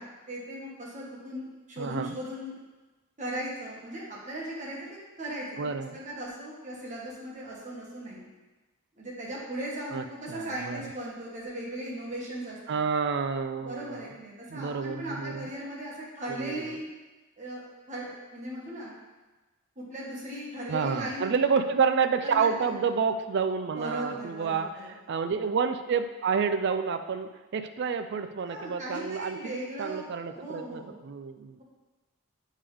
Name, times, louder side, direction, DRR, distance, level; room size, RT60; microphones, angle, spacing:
voice 1, 0.0-2.6 3.2-5.5 5.9-8.3 9.0-12.8 13.6-16.9 17.4-18.9 19.8-21.3 22.2-22.8 23.7-24.9 28.4-30.0 30.3-31.0, right 1 dB, 35° right, -5 dB, 1.5 m, -38 dB
voice 2, 1.8-2.2 5.6-6.0 9.9-10.9 12.7-14.1 14.5-15.5 16.3-16.8 20.7-31.6, right 5 dB, 50° right, 8 dB, 0.3 m, -29 dB
8.4 x 3.7 x 3.4 m, 1.2 s
head